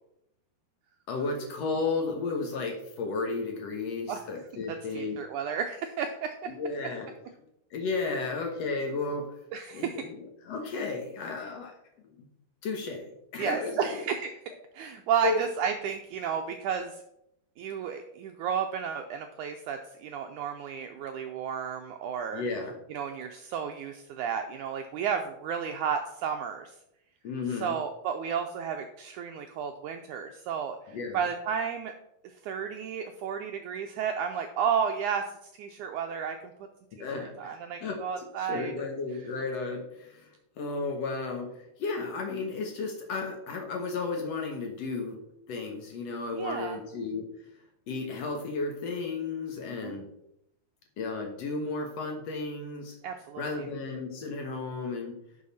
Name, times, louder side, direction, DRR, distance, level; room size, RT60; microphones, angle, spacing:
voice 1, 1.1-5.2 6.5-7.1 7.7-9.3 9.7-11.7 12.2-12.3 12.6-14.0 15.2-15.4 22.3-22.8 27.2-27.8 30.9-31.3 37.0-45.2 45.5-47.3 47.9-50.1 51.0-53.0 53.4-55.2, left 3 dB, 60° left, 3 dB, 1.8 m, -33 dB
voice 2, 4.9-6.3 9.5-10.0 13.4-14.2 14.7-17.0 17.6-22.4 22.9-26.7 27.6-31.9 32.4-35.2 35.6-36.5 37.0-38.7 46.3-46.8 49.7-50.0 53.0-53.7, right 7 dB, 85° right, 5 dB, 1.7 m, -32 dB
11.0 x 6.5 x 4.2 m, 0.80 s
omnidirectional pair, 4.3 m